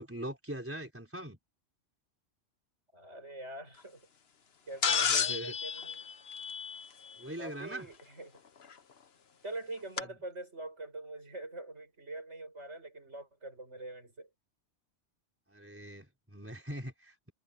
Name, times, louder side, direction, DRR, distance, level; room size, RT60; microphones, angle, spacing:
voice 1, 0.0-1.4 4.9-5.5 7.2-7.9 15.5-17.3, right 1 dB, 10° right, 4.3 m, -42 dB
voice 2, 2.9-4.1 4.7-6.0 7.4-8.4 9.4-14.3, right 2 dB, 75° right, 7.9 m, -44 dB
sound 1, 4.8-7.1 8.7-8.8 10.0-10.1, left 6 dB, 60° left, 1.3 m, -31 dB
omnidirectional pair, 1.2 m